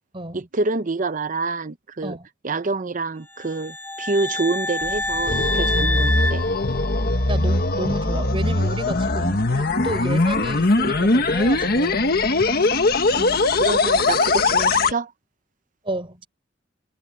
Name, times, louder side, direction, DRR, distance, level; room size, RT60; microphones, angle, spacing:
voice 1, 0.3-2.2 2.4-6.4 13.2-15.1, right 3 dB, 45° right, 0.8 m, -27 dB
sound 1, 3.3-7.4, left 2 dB, 10° left, 5.2 m, -27 dB
sound 2, 4.8-14.9, left 2 dB, 55° left, 1.6 m, -20 dB
voice 2, 7.3-12.0 15.8-16.3, right 1 dB, 30° right, 6.7 m, -31 dB
head